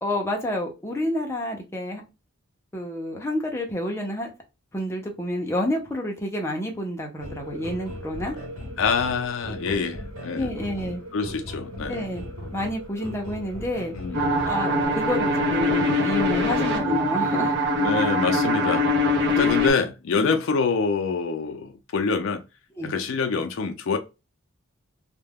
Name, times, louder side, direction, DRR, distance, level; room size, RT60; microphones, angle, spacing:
voice 1, 0.0-2.0 2.7-4.3 4.7-8.4 10.3-11.0 11.9-12.2 12.5-17.6 19.3-19.6 20.2-20.3 22.8-22.9, left 1 dB, 10° left, 0.5 m, -29 dB
sound 1, 7.2-14.9, equal, 85° right, 1.2 m, -37 dB
voice 2, 8.8-10.5 11.1-12.0 13.9-14.2 16.4-16.8 17.8-18.9 19.3-22.4 22.8-24.0, left 5 dB, 65° left, 0.4 m, -26 dB
sound 2, 14.1-19.7, left 1 dB, 55° right, 0.5 m, -23 dB
2.3 x 2.1 x 3.3 m
head